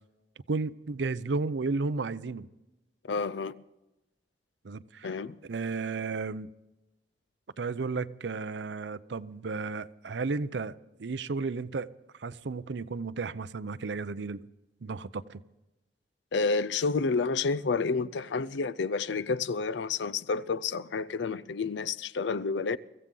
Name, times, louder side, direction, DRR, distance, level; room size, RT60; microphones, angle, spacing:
voice 1, 0.5-2.5 4.6-5.2 5.4-6.5 7.6-11.9 12.2-14.4 14.8-15.4, right 4 dB, 80° right, 0.6 m, -33 dB
voice 2, 3.1-3.5 5.0-5.4 16.3-22.8, left 4 dB, 85° left, 0.5 m, -29 dB
23.5 x 15.0 x 3.9 m
head